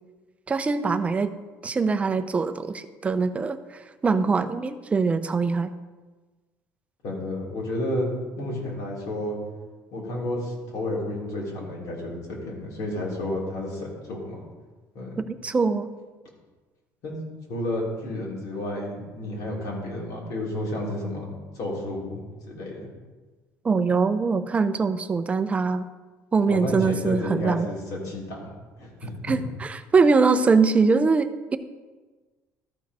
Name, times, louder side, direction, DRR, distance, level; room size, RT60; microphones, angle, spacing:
voice 1, 0.5-1.3 1.6-3.6 4.0-5.7 15.2-15.9 23.6-25.8 26.3-27.7 29.2-31.6, right 4 dB, 20° right, 11 dB, 0.4 m, -22 dB
voice 2, 7.0-8.1 8.4-9.4 9.9-14.5 14.9-15.1 17.0-17.2 17.5-21.3 21.5-22.2 22.5-22.9 26.5-28.5 28.8-29.3, left 1 dB, 65° left, -3 dB, 3.0 m, -31 dB
13.5 x 4.7 x 4.7 m, 1.3 s
cardioid pair, 140°, 7 cm